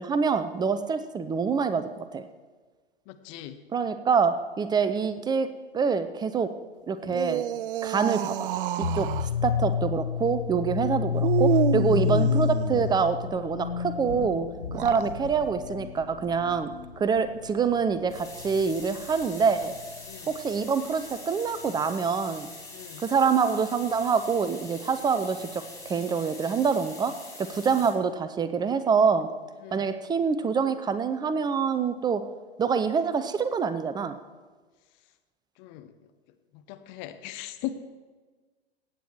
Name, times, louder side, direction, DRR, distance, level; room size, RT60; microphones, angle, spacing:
voice 1, 0.0-2.2 3.7-5.5 5.7-6.5 6.9-7.4 7.8-8.5 8.8-9.1 9.4-14.5 14.7-16.7 17.0-19.8 20.3-22.5 23.0-27.1 27.4-29.3 29.7-32.2 32.6-34.2, right 6 dB, 15° right, 11 dB, 0.5 m, -26 dB
voice 2, 3.1-3.6 15.0-15.1 20.0-20.4 22.7-23.0 29.6-29.9 35.6-35.9 36.7-37.7, left 14 dB, 35° left, 9 dB, 0.9 m, -39 dB
sound 1, 7.0-9.3 11.2-13.0 14.6-15.1, right 12 dB, 60° right, 0.5 m, -29 dB
sound 2, 8.8-20.1, left 8 dB, 80° left, 0.7 m, -29 dB
sound 3, 18.1-27.9, left 2 dB, 10° left, 2.7 m, -44 dB
16.0 x 9.0 x 4.7 m, 1.4 s
figure-of-eight pair, 95°, 32 cm